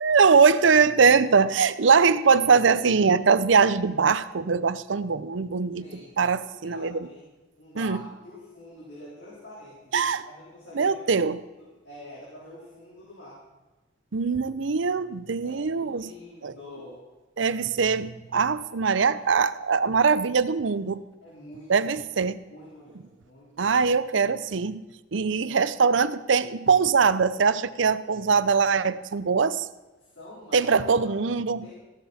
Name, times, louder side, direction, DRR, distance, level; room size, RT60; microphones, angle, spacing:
voice 1, 0.0-5.9 6.2-7.1 7.8-8.0 9.9-10.2 10.7-11.4 14.1-16.1 16.4-16.5 17.4-21.0 21.7-22.4 23.6-24.8 25.1-29.6 30.5-31.7, right 5 dB, 80° right, 15 dB, 0.6 m, -22 dB
voice 2, 5.8-6.2 6.5-7.3 7.6-9.9 10.2-13.5 15.4-17.0 21.2-22.0 22.5-23.7 25.4-25.6 30.0-30.7 31.0-31.2 31.6-31.7, left 1 dB, 70° left, -7 dB, 4.1 m, -46 dB
15.5 x 12.5 x 4.3 m, 1.2 s
head